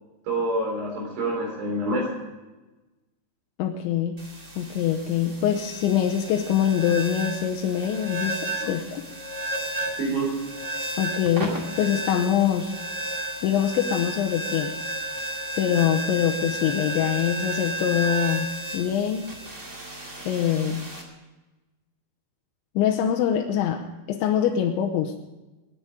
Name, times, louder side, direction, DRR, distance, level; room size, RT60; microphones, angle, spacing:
voice 1, 0.3-2.1 8.6-8.8 10.0-10.3, right 1 dB, 60° right, 0 dB, 5.6 m, -27 dB
voice 2, 3.6-4.2 4.6-9.0 11.0-12.7 13.4-14.7 15.6-18.5 18.7-19.3 20.2-20.9 22.8-25.1, left 9 dB, 80° left, 1 dB, 3.1 m, -24 dB
sound 1, 4.2-21.0, right 1 dB, 40° right, 1.0 m, -33 dB
22.0 x 10.5 x 5.1 m, 1.1 s
omnidirectional pair, 5.5 m